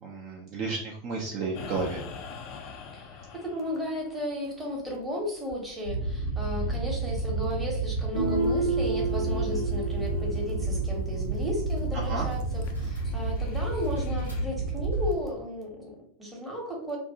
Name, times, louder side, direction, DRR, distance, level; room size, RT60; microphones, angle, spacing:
voice 1, 0.0-2.0 11.9-12.3, right 4 dB, 35° right, -2 dB, 0.4 m, -32 dB
sound 1, 1.5-8.6 8.8-11.2 11.5-11.6 12.2-14.6, left 6 dB, 40° left, 0.3 m, -47 dB
voice 2, 2.9-17.0, equal, 10° right, -2 dB, 0.8 m, -34 dB
sound 2, 5.8-15.1, right 2 dB, 85° right, 0.9 m, -30 dB
Guitar, 8.1-11.8, right 3 dB, 70° left, 0.7 m, -31 dB
2.5 x 2.0 x 2.7 m, 0.64 s
figure-of-eight pair, 90°, 0 cm